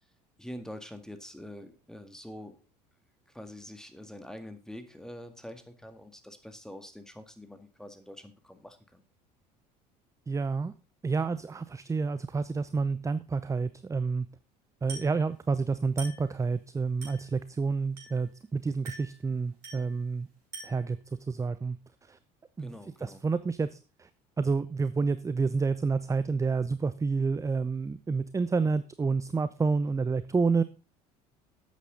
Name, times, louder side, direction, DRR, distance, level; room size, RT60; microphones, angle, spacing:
voice 1, 0.4-2.6 3.3-9.0 22.6-23.2, left 1 dB, 5° left, 8 dB, 1.9 m, -45 dB
voice 2, 10.3-10.7 11.0-14.3 14.8-20.3 20.6-21.0 21.3-21.8 22.1-22.2 22.6-22.7 23.0-24.1 24.4-30.6, right 4 dB, 15° right, 14 dB, 0.6 m, -29 dB
Glass, 14.9-15.2 16.0-16.3 17.0-17.3 18.0-18.3 18.8-19.2 19.6-20.0 20.5-20.9, right 3 dB, 80° right, 6.2 m, -44 dB
11.5 x 8.3 x 3.9 m, 0.33 s
hypercardioid pair, 65°, 21 cm